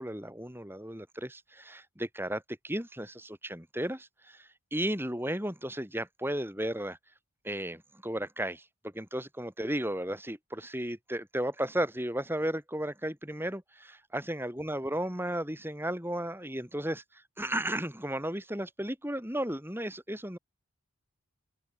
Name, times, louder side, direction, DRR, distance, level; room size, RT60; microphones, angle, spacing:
voice 1, 0.0-7.0 7.4-20.4, right 1 dB, 10° right, 8.0 m, -34 dB
open air
head